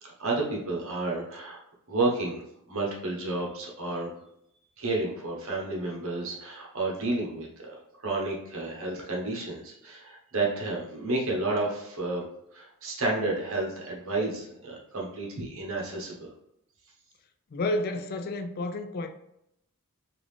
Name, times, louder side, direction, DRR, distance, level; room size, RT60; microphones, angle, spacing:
voice 1, 0.0-1.6 1.9-4.1 4.8-7.8 8.0-12.2 12.5-16.3, right 2 dB, 65° right, 1.0 m, -31 dB
voice 2, 17.5-19.1, left 2 dB, 45° left, 0.3 m, -30 dB
3.7 x 2.5 x 3.2 m
head